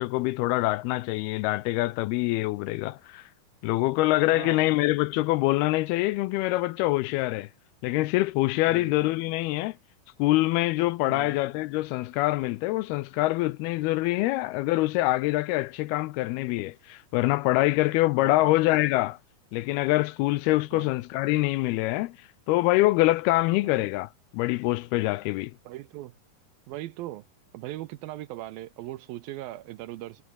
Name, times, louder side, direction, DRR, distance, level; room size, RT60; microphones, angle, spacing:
voice 1, 0.0-3.2 3.6-7.5 7.8-9.8 10.2-19.2 19.5-22.1 22.5-25.5, left 19 dB, 85° left, 2.5 m, -25 dB
voice 2, 4.3-4.7 8.7-8.9 11.1-11.4 18.2-18.5 20.7-20.9 23.6-23.8 25.7-26.1 26.7-27.2 27.5-30.2, right 15 dB, 80° right, 2.4 m, -39 dB
omnidirectional pair, 4.7 m